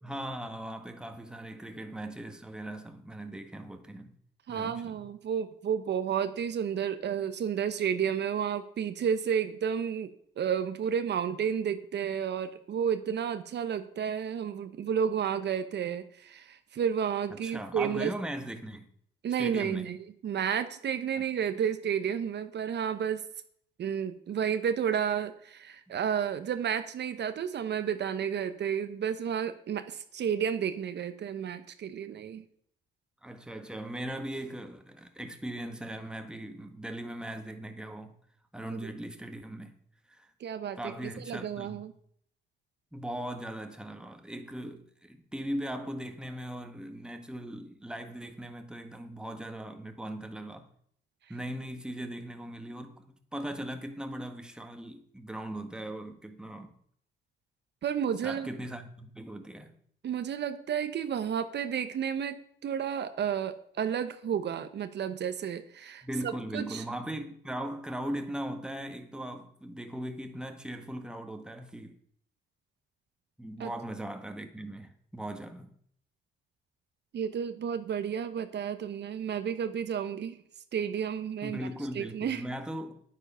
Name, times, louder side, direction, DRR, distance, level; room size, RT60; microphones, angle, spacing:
voice 1, 0.0-4.1 4.5-5.1 17.3-18.9 19.4-19.9 33.2-38.1 38.5-39.7 40.1-40.3 40.8-41.8 42.9-50.7 51.3-56.7 58.2-59.7 66.0-72.0 73.4-75.7 81.4-83.0, right 1 dB, 5° right, 1.6 m, -39 dB
voice 2, 4.5-10.1 10.4-18.1 19.2-20.0 20.2-23.2 23.8-32.4 40.4-41.9 57.8-58.5 60.0-66.8 73.6-73.7 77.1-80.4 80.7-81.6 81.9-82.4, right 8 dB, 60° right, 1.0 m, -31 dB
9.9 x 9.5 x 5.6 m
cardioid pair, 90°, 20 cm